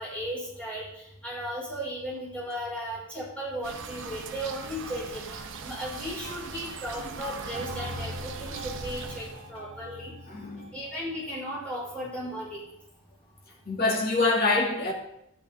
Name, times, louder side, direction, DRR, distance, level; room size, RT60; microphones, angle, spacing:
voice 1, 0.0-10.1 10.7-12.6, equal, 5° left, 5.1 m, -36 dB
sound 1, 3.6-9.5, right 4 dB, 55° right, 0.9 m, -40 dB
sound 2, 5.7-6.9 7.2-11.2, equal, 65° left, 3.1 m, -43 dB
voice 2, 10.3-10.7 13.7-14.9, left 3 dB, 45° left, 2.2 m, -25 dB
12.0 x 10.0 x 3.6 m
head